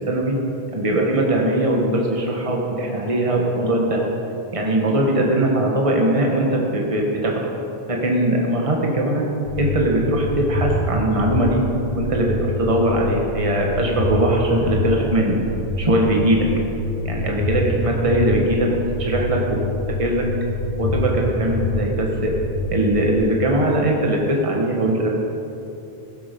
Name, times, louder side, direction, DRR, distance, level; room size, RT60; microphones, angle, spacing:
voice 1, 0.1-0.4 0.7-4.1 4.5-7.5 7.9-9.3 9.6-11.6 11.9-15.4 15.8-16.5 17.0-18.7 19.0-19.6 20.0-20.3 20.8-22.3 22.7-25.1, right 1 dB, 30° right, -1 dB, 1.6 m, -20 dB
sound 1, 9.5-23.2, left 2 dB, 75° left, 2.2 m, -26 dB
16.0 x 12.0 x 5.4 m, 2.9 s
omnidirectional pair, 1.0 m